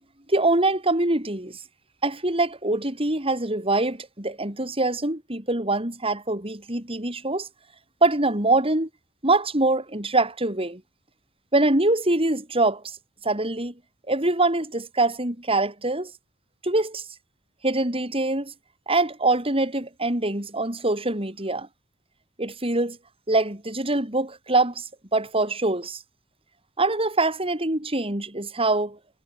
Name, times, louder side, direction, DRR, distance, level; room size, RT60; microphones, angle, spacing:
voice 1, 0.3-1.6 2.0-7.5 8.0-8.9 9.2-10.8 11.5-13.0 13.2-13.7 14.1-16.1 16.6-17.0 17.6-18.5 18.9-21.7 22.4-23.0 23.3-26.0 26.8-29.0, right 2 dB, 25° right, 4.9 m, -24 dB
head